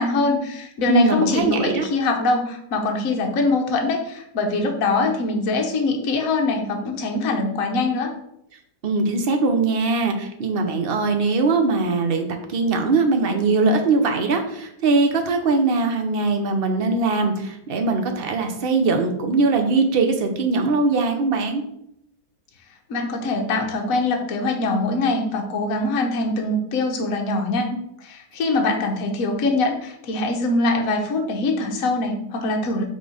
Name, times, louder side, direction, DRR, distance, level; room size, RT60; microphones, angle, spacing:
voice 1, 0.0-8.1 22.9-27.7 28.0-32.8, left 2 dB, 60° left, 2 dB, 1.3 m, -23 dB
voice 2, 0.9-1.9 8.8-21.6 27.7-27.8, right 3 dB, 45° right, 4 dB, 0.8 m, -21 dB
5.9 x 3.4 x 5.0 m, 0.76 s
omnidirectional pair, 1.8 m